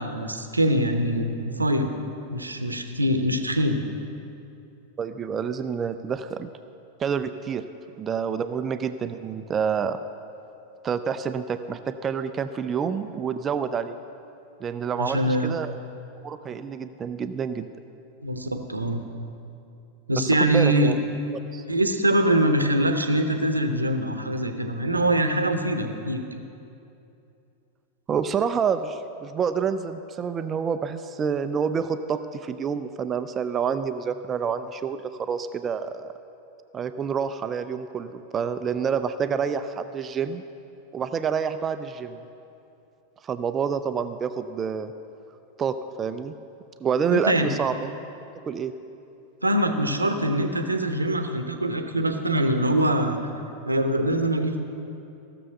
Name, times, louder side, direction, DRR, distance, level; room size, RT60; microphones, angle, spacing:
voice 1, 0.0-1.9 2.3-3.8 15.0-15.6 18.2-19.0 20.1-20.9 21.7-26.2 47.1-47.5 49.4-53.2 53.6-54.6, right 1 dB, 80° right, 7 dB, 0.9 m, -23 dB
voice 2, 5.0-6.5 7.0-7.6 8.0-10.0 10.8-14.0 14.6-15.8 16.2-17.7 20.2-20.9 21.5-21.6 28.1-36.1 36.7-40.4 40.9-42.2 43.2-44.9 45.6-46.3 46.8-47.9 48.5-48.7, right 6 dB, 25° right, 10 dB, 0.4 m, -28 dB
15.5 x 6.9 x 6.5 m, 2.7 s
figure-of-eight pair, 90°, 0 cm